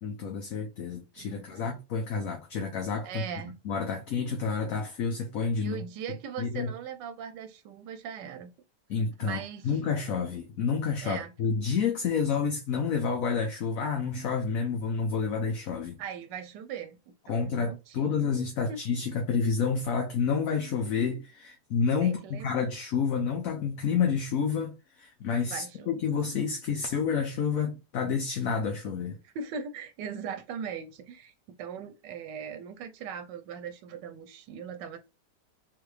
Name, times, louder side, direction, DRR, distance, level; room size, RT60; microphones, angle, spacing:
voice 1, 0.0-3.2 3.6-5.8 6.4-6.7 8.9-16.0 17.3-29.2, left 6 dB, 60° left, 1.0 m, -29 dB
voice 2, 1.2-1.8 3.0-3.6 5.6-8.5 9.2-9.7 11.0-11.3 16.0-18.3 18.7-18.8 22.0-22.6 25.5-26.0 29.2-31.3 31.6-35.0, right 7 dB, 90° right, 1.3 m, -40 dB
3.7 x 3.3 x 3.2 m
omnidirectional pair, 1.8 m